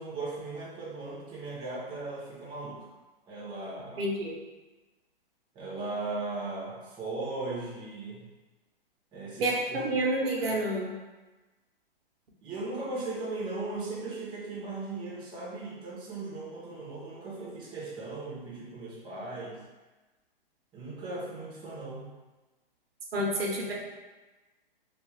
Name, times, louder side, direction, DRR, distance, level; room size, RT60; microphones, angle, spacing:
voice 1, 0.0-2.9 3.3-4.0 5.5-8.2 9.1-9.9 10.2-10.7 12.4-19.6 20.7-22.1, right 2 dB, 15° right, -6 dB, 0.6 m, -38 dB
voice 2, 4.0-4.3 9.4-9.5 9.8-10.9 23.1-23.7, right 1 dB, 75° right, -1 dB, 0.7 m, -28 dB
2.3 x 2.2 x 3.2 m, 1.2 s
hypercardioid pair, 130°, 29 cm